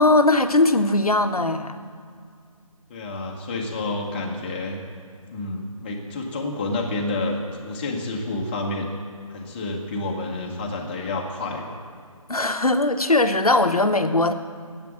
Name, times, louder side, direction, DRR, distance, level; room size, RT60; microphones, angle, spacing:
voice 1, 0.0-1.8 12.3-14.3, left 2 dB, 85° left, 8 dB, 1.0 m, -19 dB
voice 2, 2.9-4.8 5.3-8.9 9.3-11.7, left 2 dB, 15° left, 0 dB, 1.1 m, -29 dB
10.5 x 8.4 x 7.7 m, 2.2 s
figure-of-eight pair, 155°, 18 cm